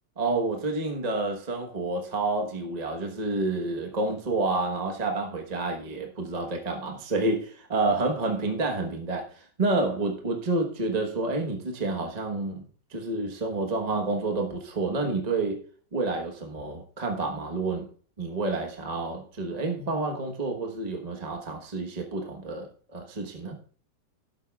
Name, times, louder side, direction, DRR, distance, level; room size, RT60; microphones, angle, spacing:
voice 1, 0.2-12.6 12.9-15.6 15.9-17.9 18.2-23.6, right 2 dB, 25° right, 1.1 m, -29 dB
12.0 x 11.0 x 2.3 m
omnidirectional pair, 1.9 m